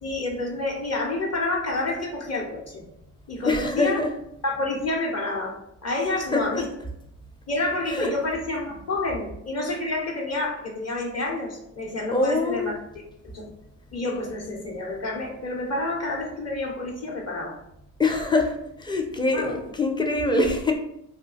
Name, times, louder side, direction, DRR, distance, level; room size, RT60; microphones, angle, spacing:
voice 1, 0.0-2.9 3.3-4.0 4.4-5.6 5.8-6.7 7.5-13.5 13.9-17.6 19.3-19.7, left 2 dB, 35° left, -1 dB, 1.0 m, -29 dB
voice 2, 3.5-4.1 6.3-6.4 7.9-8.1 12.1-12.7 18.0-18.5 18.8-20.7, left 2 dB, 10° left, 3 dB, 0.5 m, -23 dB
2.4 x 2.2 x 3.8 m, 0.78 s
hypercardioid pair, 50°, 47 cm